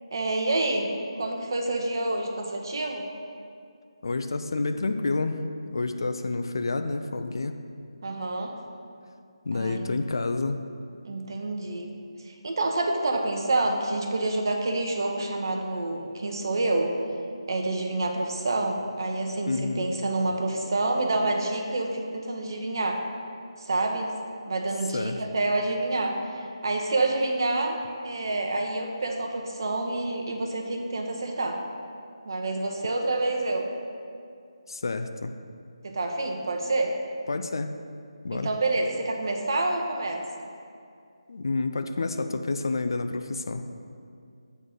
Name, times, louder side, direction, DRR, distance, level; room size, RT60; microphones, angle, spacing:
voice 1, 0.1-0.9 1.2-3.0 8.0-8.5 9.5-9.9 11.0-11.9 12.3-16.9 17.5-23.0 23.6-24.1 24.5-31.6 32.2-33.7 35.8-37.0 38.3-40.2, right 2 dB, 45° right, 2 dB, 0.8 m, -28 dB
voice 2, 4.0-5.4 5.6-7.6 9.4-10.6 19.5-19.9 24.9-25.2 34.7-35.3 37.3-37.7 38.2-38.5 41.3-43.7, left 3 dB, 50° left, 7 dB, 0.4 m, -29 dB
7.6 x 3.9 x 6.5 m, 2.3 s
figure-of-eight pair, 155°, 3 cm